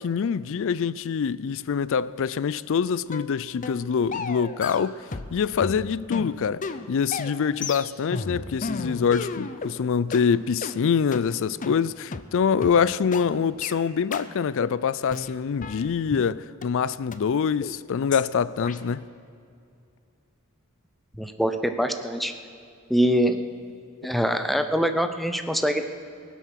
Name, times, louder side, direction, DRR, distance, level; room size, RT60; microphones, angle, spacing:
voice 1, 0.0-5.0 5.3-19.0, left 6 dB, 65° left, 0.4 m, -25 dB
sound 1, 3.1-3.3 3.6-3.8 4.1-5.3 5.6-9.8 10.1-10.3 10.6-10.8 11.1-11.3 11.6-11.8 12.1-12.3 12.6-12.8 13.1-13.3 13.6-13.8 14.1-14.3 14.6-14.8 15.1-16.3 16.6-16.7 17.1-17.2 17.6-17.8 18.1-18.3 18.6-18.8, left 4 dB, 40° left, 0.7 m, -33 dB
voice 2, 21.2-22.3 22.9-23.4 24.0-25.8, equal, ahead, 0.7 m, -24 dB
23.0 x 8.2 x 5.9 m
head